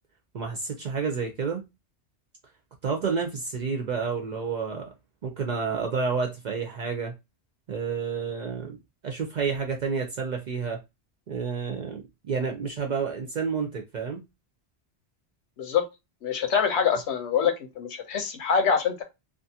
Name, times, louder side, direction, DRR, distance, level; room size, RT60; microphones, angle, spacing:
voice 1, 0.3-1.6 2.8-4.9 5.2-7.1 7.7-8.8 9.0-10.8 11.3-14.2, right 5 dB, 55° right, 0.5 m, -30 dB
voice 2, 16.2-19.0, left 6 dB, 75° left, 1.0 m, -25 dB
2.4 x 2.4 x 2.7 m
omnidirectional pair, 1.1 m